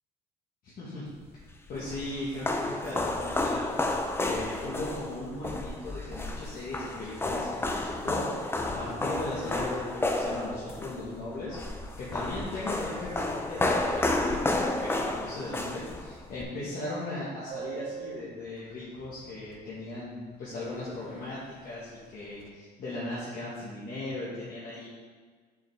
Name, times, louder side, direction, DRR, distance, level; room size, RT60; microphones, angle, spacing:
voice 1, 0.6-1.1 1.7-3.7 4.2-15.8 16.3-24.9, left 2 dB, 60° left, -9 dB, 2.0 m, -38 dB
sound 1, 1.4-16.4, left 2 dB, 15° left, 0.6 m, -31 dB
Subway metro underground, 17.5-19.6 19.9-20.0 20.3-20.5 20.8-21.2 21.5-22.5, right 8 dB, 60° right, 0.7 m, -42 dB
6.9 x 5.8 x 3.7 m, 1.5 s
cardioid pair, 110°, 17 cm